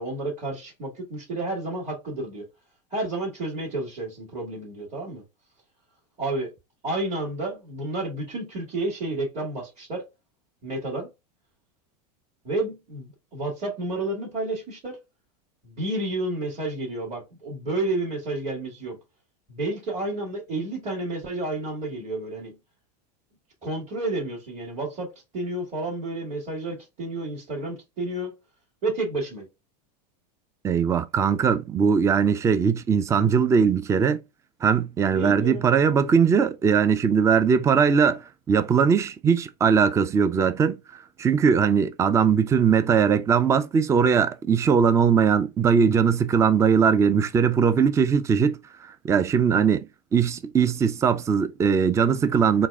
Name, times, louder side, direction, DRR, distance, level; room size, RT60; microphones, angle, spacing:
voice 1, 0.0-2.5 2.9-5.2 6.2-6.5 6.8-10.0 10.6-11.1 12.4-15.0 15.6-19.0 19.5-22.6 23.6-25.1 25.3-28.3 28.8-29.5 35.1-35.7, right 2 dB, 35° right, 1.9 m, -30 dB
voice 2, 30.6-34.2 34.6-38.2 38.5-40.8 41.2-52.7, right 6 dB, 15° right, 0.3 m, -20 dB
3.9 x 2.5 x 3.5 m
supercardioid pair, 120°, 21 cm